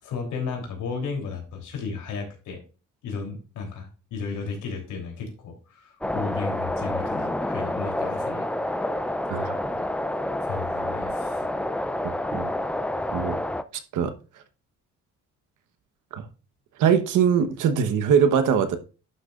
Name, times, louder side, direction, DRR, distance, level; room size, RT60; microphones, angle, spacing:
voice 1, 0.0-2.6 3.0-8.5 10.4-11.4, left 5 dB, 85° left, 3.3 m, -34 dB
sound 1, 6.0-13.6, left 1 dB, 5° left, 0.4 m, -28 dB
voice 2, 12.0-12.5 13.1-13.3 13.9-14.1 16.1-16.2 16.8-18.8, right 7 dB, 85° right, 1.2 m, -22 dB
11.0 x 6.5 x 2.5 m
cardioid pair, 90°, 30 cm